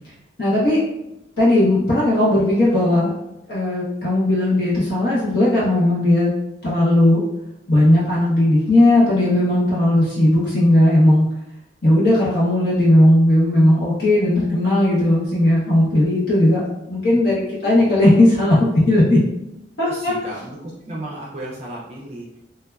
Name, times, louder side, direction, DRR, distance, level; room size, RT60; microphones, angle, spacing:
voice 1, 0.4-0.8 1.4-3.1 3.5-6.3 6.6-7.2 7.7-11.3 11.8-16.6 16.9-18.6 18.9-19.2 19.8-20.1, left 1 dB, 55° left, -7 dB, 0.7 m, -16 dB
voice 2, 19.8-22.4, right 1 dB, 35° right, -4 dB, 0.4 m, -34 dB
3.2 x 2.0 x 2.3 m, 0.87 s
head